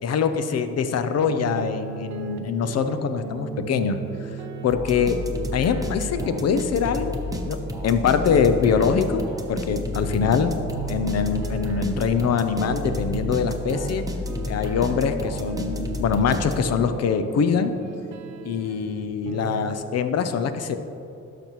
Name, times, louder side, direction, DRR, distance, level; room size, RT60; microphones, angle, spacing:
voice 1, 0.0-4.0 4.6-5.2 5.5-7.2 7.5-7.6 7.8-9.2 9.5-10.5 10.9-14.0 14.5-17.7 18.4-20.8, left 6 dB, 55° left, 9 dB, 0.6 m, -23 dB
sound 1, 1.2-19.8, right 7 dB, 70° right, 0.7 m, -37 dB
sound 2, 4.7-16.9, left 2 dB, 10° right, 0.9 m, -31 dB
12.0 x 5.9 x 3.0 m, 2.7 s
cardioid pair, 90°, 30 cm